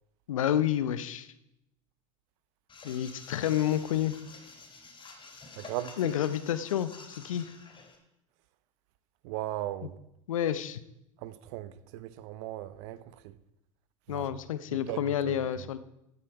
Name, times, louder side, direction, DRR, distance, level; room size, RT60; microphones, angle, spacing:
voice 1, 0.3-1.3 2.8-4.2 6.0-7.5 10.3-10.8 14.1-15.8, left 10 dB, 80° left, 0.8 m, -29 dB
sound 1, 2.7-8.0, left 4 dB, 30° left, 3.8 m, -49 dB
voice 2, 5.5-6.1 9.2-10.0 11.2-13.4 14.1-14.4 14.7-15.4, right 14 dB, 60° right, 0.8 m, -38 dB
15.0 x 8.5 x 4.8 m
hypercardioid pair, 80°, 17 cm